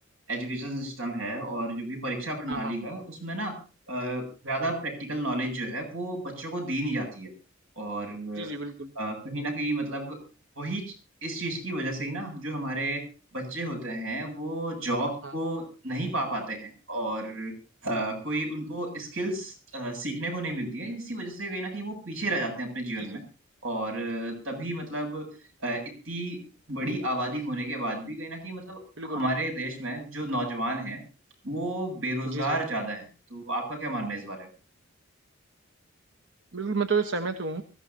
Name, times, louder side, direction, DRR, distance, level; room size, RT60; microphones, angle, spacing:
voice 1, 0.3-3.6 3.9-7.3 7.8-8.5 8.9-10.2 10.6-10.9 11.2-13.0 13.3-17.5 17.8-23.2 23.6-25.3 25.6-26.4 26.7-31.0 31.4-34.5, right 1 dB, 90° right, 2 dB, 7.8 m, -32 dB
voice 2, 8.4-8.9 15.2-15.3 23.0-23.2 29.0-29.2 32.3-32.6 36.5-37.6, right 4 dB, 65° right, 7 dB, 1.1 m, -30 dB
24.5 x 15.0 x 2.8 m, 0.36 s
head